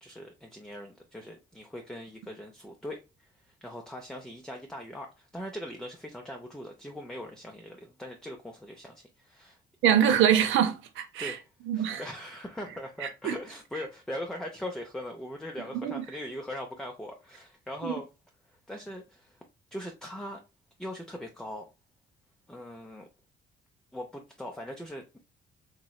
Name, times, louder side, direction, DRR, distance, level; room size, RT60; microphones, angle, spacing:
voice 1, 0.0-9.6 11.2-18.1 18.5-19.4 19.7-20.4 20.8-21.7 22.5-23.1 23.9-25.2, left 1 dB, 5° left, 0.5 m, -40 dB
voice 2, 9.8-11.4 11.7-12.0 13.0-13.3 15.8-16.1 17.8-17.9, right 9 dB, 80° right, 0.6 m, -24 dB
3.0 x 3.0 x 2.2 m
cardioid pair, 90°, 20 cm